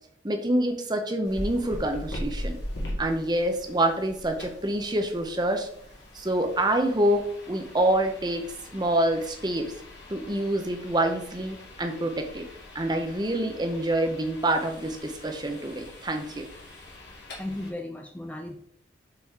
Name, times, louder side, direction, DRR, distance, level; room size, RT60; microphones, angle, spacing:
voice 1, 0.2-2.6 3.0-5.7 6.1-9.7 10.1-12.5 12.7-16.5, right 1 dB, 20° right, 5 dB, 0.7 m, -26 dB
sound 1, 1.2-17.7, equal, 60° left, 2.0 m, -41 dB
voice 2, 17.4-18.6, left 1 dB, 5° left, 3 dB, 0.4 m, -35 dB
5.4 x 4.2 x 4.7 m, 0.66 s
head